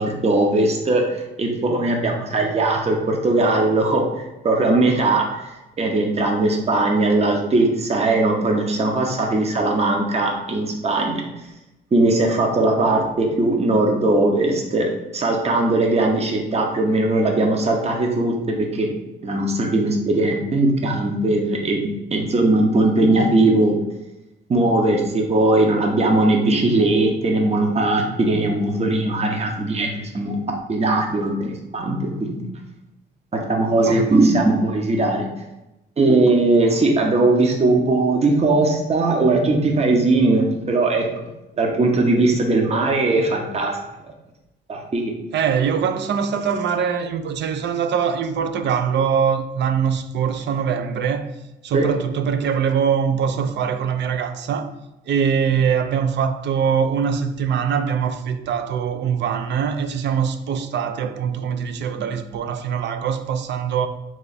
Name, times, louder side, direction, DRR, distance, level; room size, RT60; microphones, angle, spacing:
voice 1, 0.0-4.0 4.4-5.3 5.8-11.2 11.9-18.9 19.2-23.8 24.5-30.4 30.7-32.4 33.3-35.3 36.0-41.3 41.6-43.8 44.7-45.1 51.7-51.9, right 2 dB, 30° right, 0.8 m, -19 dB
voice 2, 33.8-34.2 45.3-51.3 51.6-54.7 55.1-63.9, right 7 dB, 60° right, 0.4 m, -22 dB
3.4 x 3.1 x 4.0 m
cardioid pair, 90°, 20 cm